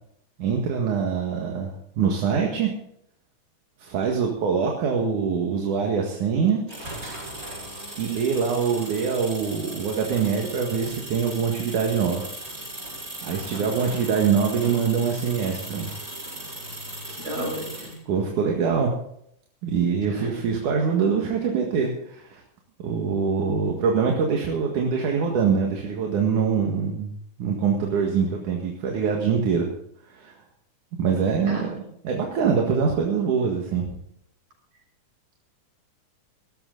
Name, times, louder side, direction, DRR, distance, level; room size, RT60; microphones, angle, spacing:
voice 1, 0.4-2.7 3.8-6.6 8.0-12.3 13.2-15.9 18.1-18.9 19.6-22.4 22.8-27.1 27.4-29.7 30.1-30.3 31.0-31.7 32.0-34.0, right 6 dB, 80° right, 1 dB, 3.3 m, -24 dB
sound 1, 6.7-18.0, right 1 dB, 25° right, 6.0 m, -37 dB
voice 2, 17.1-18.0 20.1-20.5 31.5-31.8, equal, 55° right, -2 dB, 8.1 m, -34 dB
18.5 x 13.5 x 4.0 m, 0.71 s
omnidirectional pair, 3.5 m